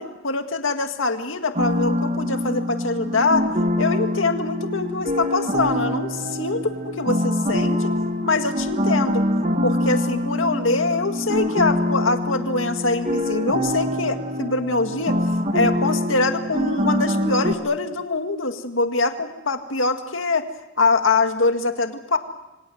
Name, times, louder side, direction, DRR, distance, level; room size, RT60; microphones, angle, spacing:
voice 1, 0.0-3.5 3.8-7.9 8.2-9.2 9.6-15.2 15.5-20.5 20.8-22.2, left 3 dB, 70° left, 6 dB, 2.0 m, -23 dB
sound 1, 1.5-17.5, left 1 dB, 35° right, 1.8 m, -24 dB
27.5 x 24.5 x 7.9 m, 0.98 s
head